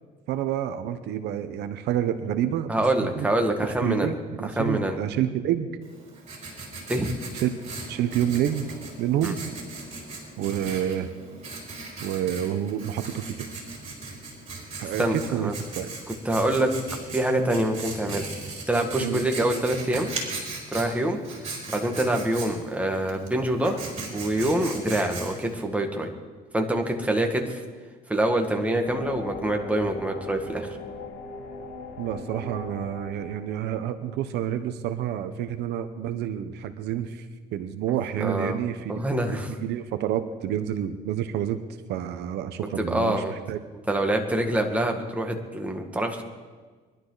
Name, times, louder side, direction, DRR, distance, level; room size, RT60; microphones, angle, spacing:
voice 1, 0.3-2.7 3.0-3.3 3.8-5.7 7.3-7.5 7.9-8.7 9.0-9.4 10.4-11.1 12.0-13.5 14.8-15.0 15.3-15.9 19.0-19.2 32.0-37.2 37.5-41.6 41.9-43.6, right 10 dB, 80° right, 9 dB, 1.0 m, -28 dB
voice 2, 2.7-4.1 4.4-5.0 6.9-7.1 9.2-9.3 15.0-15.5 16.3-16.7 17.1-18.3 18.7-20.1 20.7-21.2 21.7-23.8 24.1-26.1 26.5-27.6 28.1-30.8 38.2-38.6 38.9-39.5 42.8-43.3 43.9-46.2, right 1 dB, 10° right, 2 dB, 2.0 m, -25 dB
Writing, 5.8-25.6, right 3 dB, 40° right, 5.0 m, -38 dB
sound 1, 28.9-34.2, left 2 dB, 90° left, 4.6 m, -39 dB
23.0 x 12.0 x 4.1 m, 1.4 s
cardioid pair, 110°, 17 cm